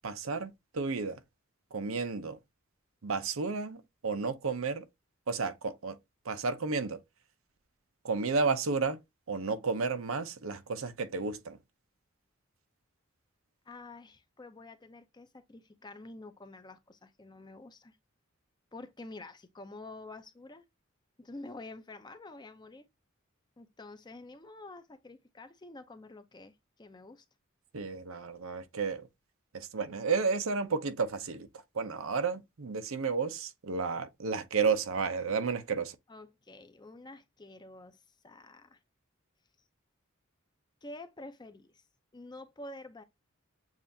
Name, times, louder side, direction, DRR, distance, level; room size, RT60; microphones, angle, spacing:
voice 1, 0.0-1.2 1.7-2.4 3.0-4.9 5.3-6.0 6.2-7.0 8.0-9.0 9.3-11.6 27.7-29.1 29.5-36.0, right 4 dB, 80° right, 0.7 m, -32 dB
voice 2, 13.7-18.0 18.7-20.6 21.2-22.8 23.6-27.2 36.1-38.8 40.8-41.8 42.1-43.0, left 2 dB, 20° left, 0.6 m, -48 dB
7.3 x 2.5 x 2.7 m
head